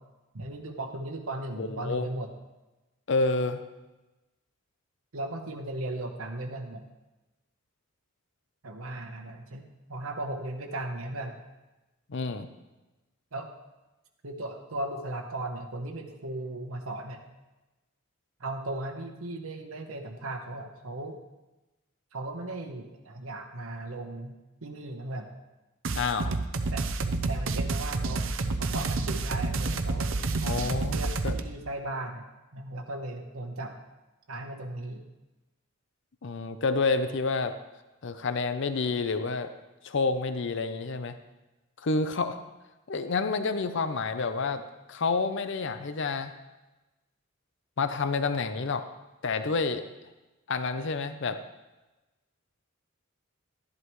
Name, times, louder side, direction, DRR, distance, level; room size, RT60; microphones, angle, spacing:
voice 1, 0.3-2.3 5.1-6.9 8.6-11.4 13.3-13.5 14.2-17.2 18.4-21.2 22.1-24.4 24.6-25.3 26.7-26.8 27.3-30.1 30.9-32.3 32.5-33.7 34.3-35.0, right 2 dB, 85° right, 3 dB, 1.0 m, -37 dB
voice 2, 1.6-2.1 3.1-3.6 12.1-12.5 26.0-26.4 30.4-31.0 31.2-31.3 36.2-37.5 38.0-39.5 39.8-41.2 41.8-42.4 42.9-44.6 44.9-46.3 47.8-48.8 49.2-49.8 50.5-51.4, left 4 dB, 60° left, 10 dB, 0.6 m, -29 dB
sound 1, 25.8-31.4, right 3 dB, 65° right, 0.6 m, -29 dB
12.0 x 11.0 x 3.1 m, 1.1 s
head